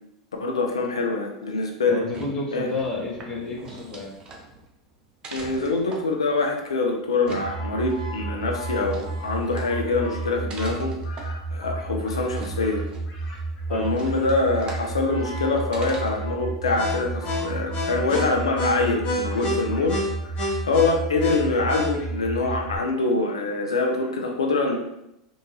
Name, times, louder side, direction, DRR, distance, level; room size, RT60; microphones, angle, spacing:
voice 1, 0.4-2.0 2.5-2.7 5.3-12.8 13.7-20.0 20.7-24.8, left 3 dB, 85° left, 2 dB, 0.6 m, -24 dB
voice 2, 1.9-4.1 13.7-14.0, left 3 dB, 25° left, -4 dB, 1.3 m, -31 dB
sound 1, 1.9-16.4, right 3 dB, 35° right, 0.8 m, -43 dB
sound 2, 7.4-22.8, right 1 dB, 40° left, 1.1 m, -30 dB
3.5 x 2.6 x 3.1 m, 0.83 s
hypercardioid pair, 90°, 3 cm